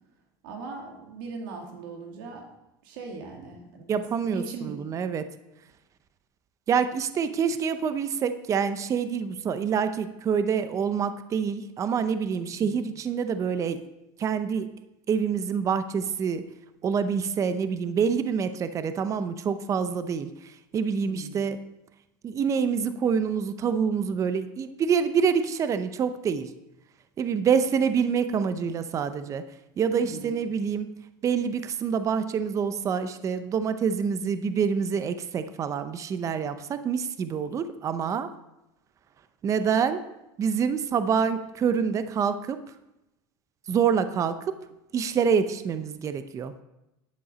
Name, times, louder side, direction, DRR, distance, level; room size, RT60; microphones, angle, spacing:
voice 1, 0.4-2.5 2.8-3.9 4.2-4.7 12.5-12.8 21.0-21.4 29.9-30.3, right 4 dB, 75° right, 1 dB, 2.4 m, -39 dB
voice 2, 3.9-5.2 6.7-13.8 14.2-14.7 15.1-16.5 16.8-21.6 22.2-26.5 27.2-29.4 29.8-38.3 39.4-40.0 40.4-42.6 43.7-44.6 44.9-46.6, right 6 dB, 30° right, 11 dB, 0.6 m, -26 dB
10.5 x 7.0 x 5.0 m, 0.91 s
supercardioid pair, 130°, 11 cm